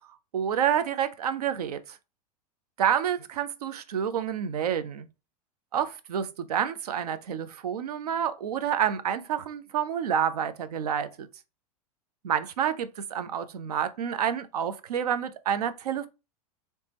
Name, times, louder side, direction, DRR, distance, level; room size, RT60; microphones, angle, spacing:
voice 1, 0.3-2.0 2.8-5.1 5.7-11.3 12.2-16.1, right 9 dB, 75° right, 0.6 m, -28 dB
3.3 x 3.1 x 2.9 m
hypercardioid pair, 95°, 20 cm